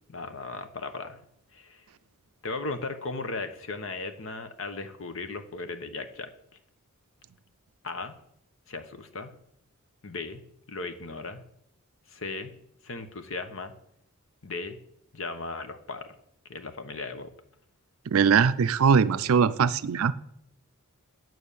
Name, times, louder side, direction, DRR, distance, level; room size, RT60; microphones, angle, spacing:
voice 1, 0.1-1.2 1.5-1.8 2.4-6.3 7.8-8.2 8.7-9.3 10.0-11.4 12.1-12.5 12.8-13.7 14.4-14.8 15.1-16.1 16.5-17.3, left 3 dB, 60° left, 1.0 m, -36 dB
voice 2, 18.1-20.1, right 6 dB, 75° right, 0.4 m, -21 dB
9.4 x 6.1 x 6.8 m
head